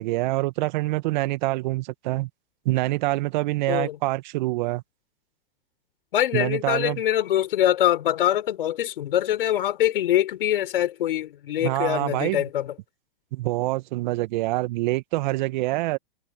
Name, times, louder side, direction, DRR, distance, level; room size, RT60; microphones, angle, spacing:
voice 1, 0.0-2.3 2.6-4.8 6.3-7.0 11.6-12.4 13.3-16.0, right 20 dB, 50° right, 1.6 m, -26 dB
voice 2, 6.1-12.7, left 12 dB, 65° left, 4.3 m, -24 dB
hypercardioid pair, 115°, 29 cm